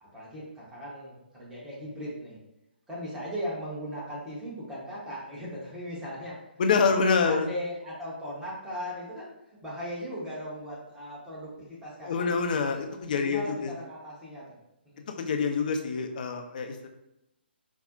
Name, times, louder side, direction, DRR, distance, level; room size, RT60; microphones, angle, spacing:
voice 1, 0.0-2.4 2.9-6.4 6.8-7.0 7.2-12.3 13.2-14.5 14.9-15.0, equal, 5° right, -8 dB, 0.9 m, -38 dB
voice 2, 6.6-7.5 12.0-13.7 15.0-16.9, left 5 dB, 45° left, 5 dB, 0.4 m, -26 dB
4.2 x 2.0 x 2.5 m, 0.87 s
figure-of-eight pair, 130°, 6 cm